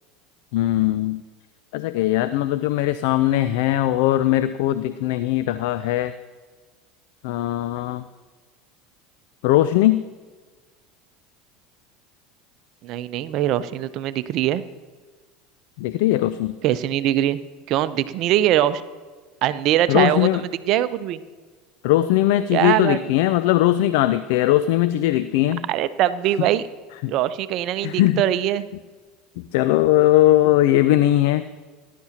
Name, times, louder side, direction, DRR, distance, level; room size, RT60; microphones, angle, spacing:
voice 1, 0.5-1.2 1.7-6.1 7.2-8.0 9.4-10.0 15.8-16.5 19.9-20.4 21.8-25.6 27.0-27.1 27.8-28.2 29.4-31.5, left 14 dB, 65° left, 13 dB, 0.4 m, -19 dB
voice 2, 12.8-14.6 16.6-17.4 17.7-18.8 19.4-21.2 22.5-23.0 25.7-26.6 27.1-28.7, right 12 dB, 55° right, 13 dB, 0.6 m, -22 dB
18.5 x 11.0 x 2.9 m, 1.4 s
hypercardioid pair, 80°, 0 cm